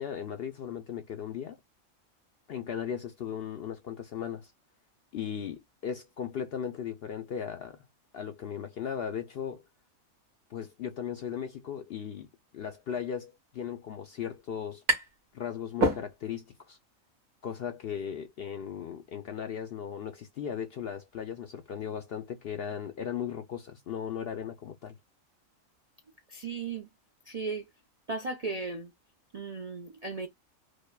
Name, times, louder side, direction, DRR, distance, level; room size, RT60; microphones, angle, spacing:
voice 1, 0.0-1.6 2.5-4.5 5.1-7.8 8.1-9.6 10.5-12.3 12.5-14.8 15.3-16.8 17.4-24.9, left 8 dB, 65° left, 0.6 m, -37 dB
sound 1, 14.5-15.3 15.6-16.5, right 1 dB, 90° right, 1.7 m, -29 dB
voice 2, 26.3-26.9 27.3-27.7 28.1-28.9 29.3-30.3, right 4 dB, 55° right, 0.4 m, -36 dB
5.1 x 2.1 x 2.2 m
omnidirectional pair, 1.4 m